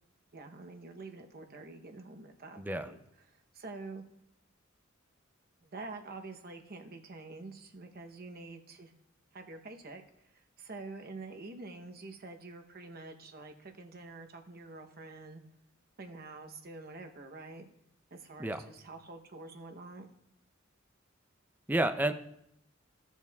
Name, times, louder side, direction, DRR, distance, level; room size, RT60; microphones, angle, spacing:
voice 1, 0.3-3.0 3.3-4.0 5.6-8.9 9.3-15.4 16.0-17.7 18.1-20.1, right 3 dB, 50° right, 5 dB, 0.9 m, -47 dB
voice 2, 2.6-2.9 18.4-18.6 21.7-22.1, right 1 dB, 10° right, 9 dB, 0.4 m, -30 dB
16.0 x 7.2 x 2.3 m, 0.76 s
head